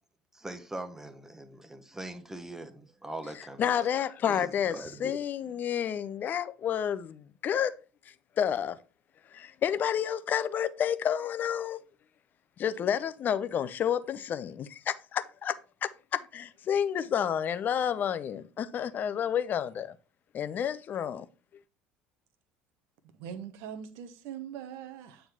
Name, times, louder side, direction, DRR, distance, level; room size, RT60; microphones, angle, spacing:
voice 1, 0.3-3.9 4.3-5.2, right 1 dB, 10° right, 1.2 m, -42 dB
voice 2, 3.6-7.7 8.4-8.8 9.3-11.8 12.6-19.9 20.3-21.3, left 9 dB, 40° left, 0.7 m, -30 dB
voice 3, 23.2-25.2, right 9 dB, 60° right, 1.0 m, -41 dB
9.0 x 3.9 x 4.5 m
figure-of-eight pair, 60°, 5 cm